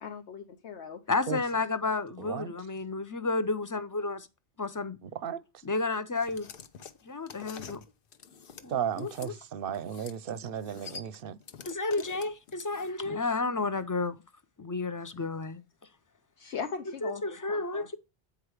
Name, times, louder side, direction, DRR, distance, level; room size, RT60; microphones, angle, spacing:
voice 1, 0.0-1.0 9.0-9.3 12.0-12.1 15.1-15.3 16.4-17.9, left 6 dB, 85° left, 1.2 m, -39 dB
voice 2, 1.1-4.3 4.6-5.0 5.7-6.5 7.1-7.8 8.6-8.7 11.7-14.2 14.6-15.6 17.0-18.0, left 3 dB, 30° left, 0.3 m, -31 dB
voice 3, 2.2-2.5 5.0-5.6 8.7-11.4, right 8 dB, 60° right, 0.7 m, -35 dB
sound 1, 6.1-9.3 9.7-10.2 10.4-13.1, left 6 dB, 55° left, 0.9 m, -47 dB
8.6 x 4.8 x 4.8 m
omnidirectional pair, 1.1 m